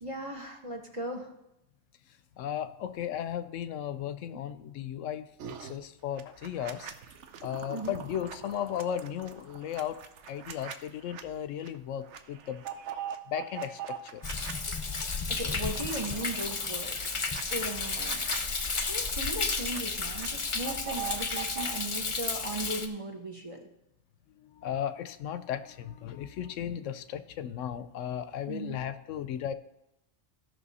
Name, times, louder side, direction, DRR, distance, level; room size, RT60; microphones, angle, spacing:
voice 1, 0.0-1.3 4.3-4.4 7.7-8.0 15.4-17.0 17.5-18.2 18.9-23.6 28.5-28.8, right 1 dB, 25° right, 2 dB, 1.1 m, -37 dB
voice 2, 2.4-5.3 5.6-6.9 7.4-10.0 10.3-12.6 13.3-14.2 24.3-29.5, left 10 dB, 80° left, 12 dB, 0.9 m, -35 dB
sound 1, 5.4-5.8 6.2-11.2 11.6-11.8 12.0-14.5 14.9-19.8 20.1-21.7, right 8 dB, 70° right, 1.0 m, -42 dB
Thunder, 14.2-22.9, left 4 dB, 30° left, 0.7 m, -32 dB
15.5 x 5.9 x 4.1 m, 0.86 s
omnidirectional pair, 1.3 m